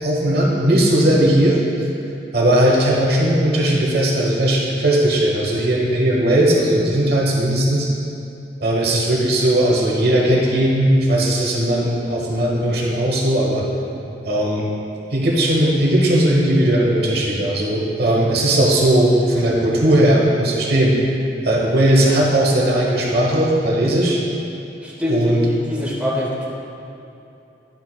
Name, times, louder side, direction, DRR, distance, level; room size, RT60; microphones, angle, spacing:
voice 1, 0.0-1.6 2.3-7.9 8.6-13.6 13.9-14.7 15.1-21.0 21.4-24.2 25.1-25.4, right 1 dB, 60° right, -3 dB, 1.1 m, -17 dB
voice 2, 24.8-26.5, left 1 dB, 5° right, -5 dB, 0.8 m, -24 dB
10.0 x 6.1 x 2.3 m, 2.8 s
head